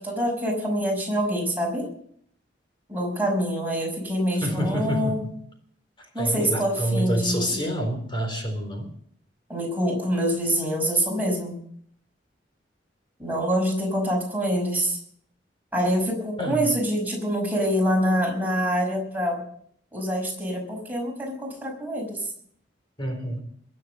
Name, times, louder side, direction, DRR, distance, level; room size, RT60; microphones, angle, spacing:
voice 1, 0.0-1.9 2.9-5.3 6.1-7.6 9.5-11.6 13.2-15.0 15.7-19.4 19.9-22.3, equal, 10° right, -1 dB, 5.5 m, -25 dB
voice 2, 4.4-5.3 6.2-8.9 16.4-16.7 23.0-23.4, equal, 30° left, 3 dB, 3.8 m, -27 dB
22.0 x 7.6 x 6.9 m, 0.64 s
head